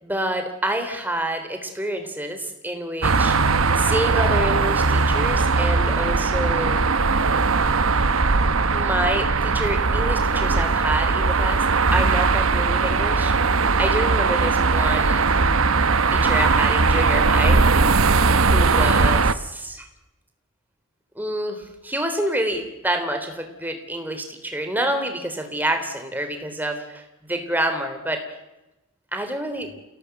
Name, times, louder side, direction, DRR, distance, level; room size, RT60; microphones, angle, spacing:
voice 1, 0.0-3.4 3.7-6.8 8.7-11.6 11.9-13.3 13.8-15.3 16.1-17.6 18.4-19.9 21.1-28.2 29.1-29.7, right 1 dB, 10° right, 6 dB, 3.5 m, -27 dB
sound 1, 3.0-19.3, right 4 dB, 75° right, 1.1 m, -19 dB
28.0 x 17.5 x 8.0 m, 0.98 s
head